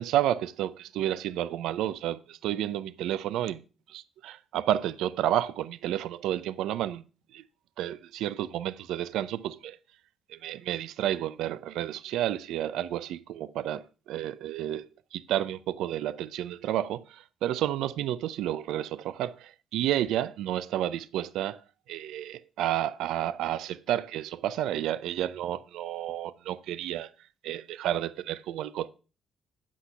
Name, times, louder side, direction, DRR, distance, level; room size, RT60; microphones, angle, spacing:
voice 1, 0.0-3.6 3.9-7.0 7.3-7.4 7.8-9.8 10.3-21.6 21.9-27.1 27.4-28.9, right 12 dB, 85° right, 0.4 m, -31 dB
8.1 x 6.2 x 5.4 m
cardioid pair, 90°, 0 cm